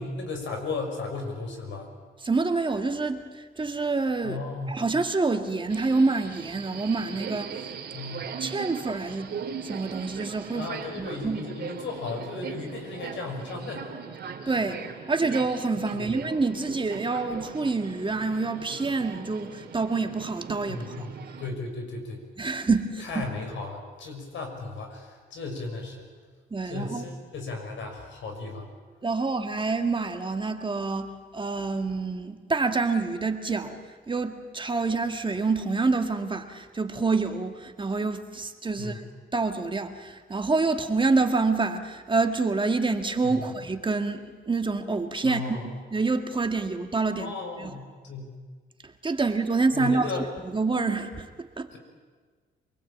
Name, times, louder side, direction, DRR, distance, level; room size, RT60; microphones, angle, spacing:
voice 1, 0.0-1.9 4.2-4.8 7.9-8.3 10.5-13.9 15.9-16.1 20.7-22.2 23.0-26.1 26.6-28.7 38.8-39.0 43.2-43.5 45.2-45.7 47.2-48.3 49.7-50.2 51.7-51.8, left 3 dB, 70° left, 3 dB, 6.4 m, -35 dB
voice 2, 2.2-4.4 4.7-7.5 8.4-9.3 9.6-10.7 11.0-11.4 14.5-14.8 15.1-21.1 22.4-23.3 26.5-27.0 29.0-33.8 34.1-39.0 39.3-44.2 44.5-47.3 47.6-47.8 48.8-50.1 50.4-51.3 51.6-51.7, right 3 dB, 25° right, 6 dB, 1.9 m, -27 dB
Subway metro underground, 5.7-21.5, right 7 dB, 55° right, 3.2 m, -39 dB
27.0 x 20.5 x 8.9 m, 1.5 s
cardioid pair, 90°, 20 cm